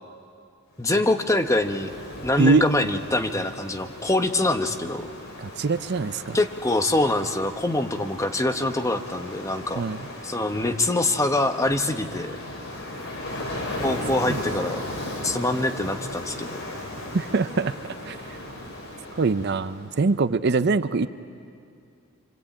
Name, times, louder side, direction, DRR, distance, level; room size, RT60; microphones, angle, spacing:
Ocean, 0.8-19.9, left 1 dB, 60° left, 5.7 m, -37 dB
voice 1, 0.8-2.0 2.2-5.1 6.3-9.8 10.2-12.3 13.8-14.8 15.2-16.6, left 2 dB, 15° left, 6 dB, 1.0 m, -24 dB
voice 2, 5.4-6.4 9.8-10.0 14.3-14.4 17.1-17.7 18.0-18.2 19.1-21.1, right 4 dB, 50° right, 12 dB, 0.6 m, -23 dB
26.5 x 25.5 x 8.6 m, 2.5 s
head